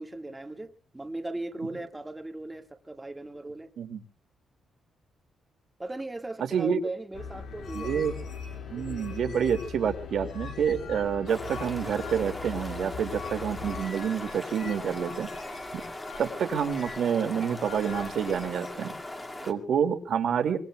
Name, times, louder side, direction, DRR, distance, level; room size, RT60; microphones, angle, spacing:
voice 1, 0.0-3.7 5.8-8.3 8.7-9.4 19.2-19.6, right 2 dB, 10° right, 1.8 m, -39 dB
voice 2, 6.4-6.8 7.7-8.2 8.7-15.3 16.2-18.9 19.4-20.6, right 7 dB, 65° right, 2.4 m, -28 dB
sound 1, 7.1-13.8, left 6 dB, 75° left, 4.4 m, -40 dB
sound 2, 7.6-18.7, left 5 dB, 55° left, 3.8 m, -46 dB
sound 3, 11.3-19.5, left 1 dB, 20° left, 2.2 m, -39 dB
25.0 x 22.5 x 2.3 m
cardioid pair, 125°, 0 cm